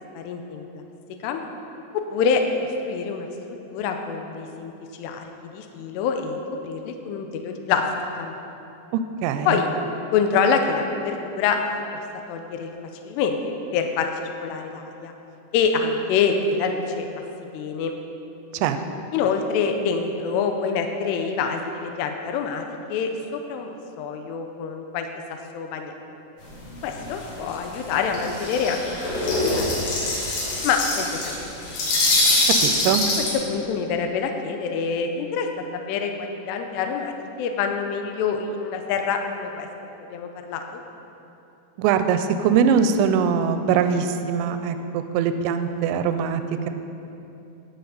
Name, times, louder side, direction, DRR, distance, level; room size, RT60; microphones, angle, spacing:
voice 1, 0.1-0.7 1.2-1.4 2.1-2.4 2.8-3.3 3.7-4.7 5.0-5.2 5.5-7.8 8.2-8.3 9.5-9.7 10.1-11.6 12.3-12.7 13.1-13.4 13.7-15.1 15.5-17.1 17.5-17.9 19.1-22.6 22.9-23.7 24.0-25.1 25.5-25.9 26.8-29.8 30.6-31.5 33.5-35.5 35.9-37.1 37.4-39.7 40.1-40.6, left 6 dB, 85° left, 4 dB, 2.5 m, -26 dB
voice 2, 8.9-9.6 18.5-18.8 32.6-33.1 41.8-46.7, right 7 dB, 85° right, 9 dB, 2.7 m, -22 dB
sound 1, 26.7-26.8 27.0-27.2 27.5-33.3, left 2 dB, 70° left, 4.3 m, -23 dB
18.0 x 6.7 x 4.0 m, 2.8 s
omnidirectional pair, 5.5 m